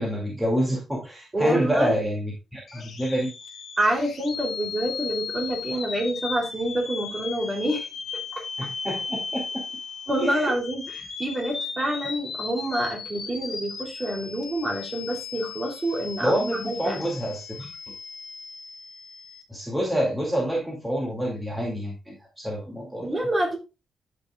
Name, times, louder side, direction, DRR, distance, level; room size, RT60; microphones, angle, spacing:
voice 1, 0.0-3.3 8.6-9.6 10.2-10.5 16.2-17.7 19.5-23.1, equal, 5° right, -3 dB, 2.3 m, -27 dB
voice 2, 1.3-2.0 3.8-7.9 8.3-8.4 10.1-17.0 23.0-23.6, right 1 dB, 25° right, 0 dB, 2.9 m, -27 dB
sound 1, 2.7-19.4, left 5 dB, 55° left, 2.0 m, -36 dB
12.0 x 5.5 x 2.3 m, 0.26 s
cardioid pair, 120°, 0 cm